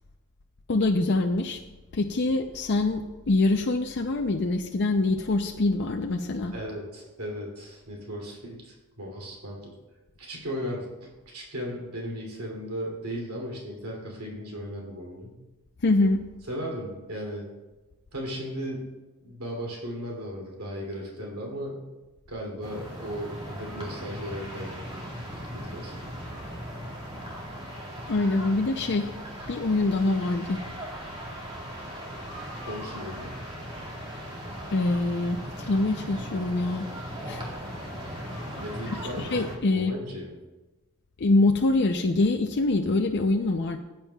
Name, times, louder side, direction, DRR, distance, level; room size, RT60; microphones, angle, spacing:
voice 1, 0.7-1.6 1.9-3.0 3.3-6.5 15.8-16.2 28.1-29.1 29.5-30.6 34.7-36.9 37.3-37.4 39.2-40.0 41.2-43.8, left 2 dB, 50° left, 3 dB, 0.5 m, -24 dB
voice 2, 6.5-9.7 10.2-15.3 16.5-17.5 18.1-18.9 19.2-21.9 22.3-25.2 25.5-26.1 32.6-33.4 38.5-40.4, equal, 80° right, -2 dB, 2.7 m, -36 dB
sound 1, 22.6-39.6, equal, 25° right, 2.0 m, -38 dB
17.5 x 8.9 x 2.3 m, 1.2 s
head